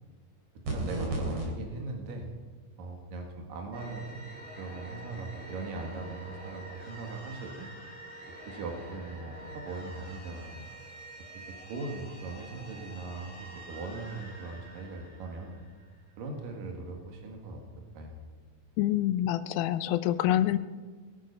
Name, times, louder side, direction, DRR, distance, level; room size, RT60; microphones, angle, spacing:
sound 1, 0.6-1.5, right 2 dB, 45° right, 4.4 m, -31 dB
voice 1, 0.7-2.3 2.8-4.2 4.6-7.7 8.5-10.6 11.5-15.6 16.2-17.6 17.9-18.2, right 3 dB, 70° right, 1 dB, 3.6 m, -39 dB
sound 2, 3.7-16.2, right 1 dB, 5° left, 2.8 m, -47 dB
voice 2, 18.8-20.6, left 12 dB, 85° left, 13 dB, 2.5 m, -26 dB
21.5 x 9.9 x 5.6 m, 1.3 s
omnidirectional pair, 4.2 m